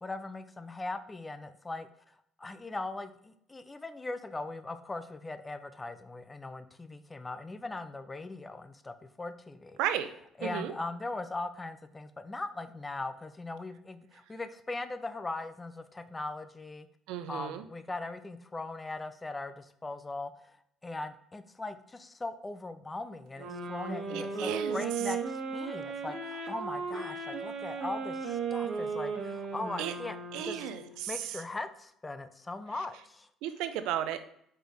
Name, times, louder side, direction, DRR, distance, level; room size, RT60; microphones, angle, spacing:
voice 1, 0.0-9.8 10.4-16.9 17.3-20.6 20.8-30.6 31.1-33.3, left 2 dB, 20° left, 11 dB, 0.6 m, -40 dB
voice 2, 9.8-10.1 10.4-10.7 17.1-17.6 24.1-24.8 29.8-29.9 30.3-31.4 33.4-34.2, right 10 dB, 85° right, 11 dB, 0.6 m, -34 dB
sound 1, 23.4-31.1, right 5 dB, 65° right, 1.3 m, -36 dB
5.0 x 4.4 x 5.0 m, 0.71 s
supercardioid pair, 90°, 0 cm